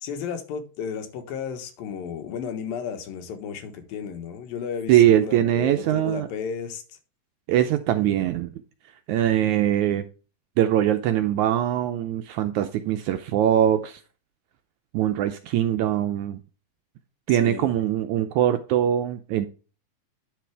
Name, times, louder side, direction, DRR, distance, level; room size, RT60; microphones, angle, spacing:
voice 1, 0.0-6.8 17.3-17.7, left 7 dB, 85° left, 3.1 m, -33 dB
voice 2, 4.9-6.3 7.5-8.5 9.1-10.1 10.6-14.0 14.9-16.4 17.3-19.5, right 11 dB, 80° right, 1.7 m, -22 dB
10.0 x 5.9 x 3.4 m
omnidirectional pair, 4.0 m